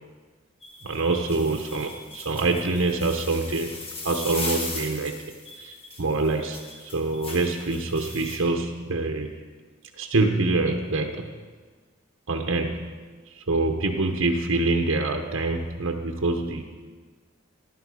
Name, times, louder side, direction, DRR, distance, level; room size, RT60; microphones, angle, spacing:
sound 1, 0.6-8.4, left 2 dB, 25° left, 1.7 m, -38 dB
voice 1, 0.8-3.8 4.0-5.2 5.6-9.3 10.0-11.3 12.3-13.0 13.3-16.6, right 3 dB, 65° right, 3 dB, 0.9 m, -25 dB
15.0 x 12.0 x 4.8 m, 1.5 s
head